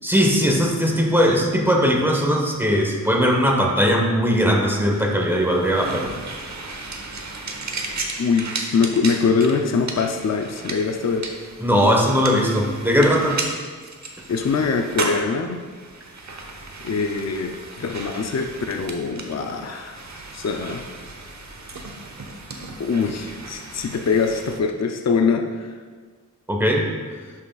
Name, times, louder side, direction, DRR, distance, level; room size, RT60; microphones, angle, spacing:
voice 1, 0.0-6.2 11.6-13.4 26.5-26.9, equal, 5° right, 1 dB, 1.2 m, -19 dB
sound 1, 4.8-24.6, right 3 dB, 55° right, 0.9 m, -35 dB
voice 2, 8.2-11.3 14.3-15.6 16.8-20.0 20.3-20.8 22.8-25.8 27.2-27.3, left 5 dB, 50° left, 4 dB, 0.5 m, -23 dB
11.0 x 5.7 x 2.4 m, 1.6 s
wide cardioid pair, 60°, 33 cm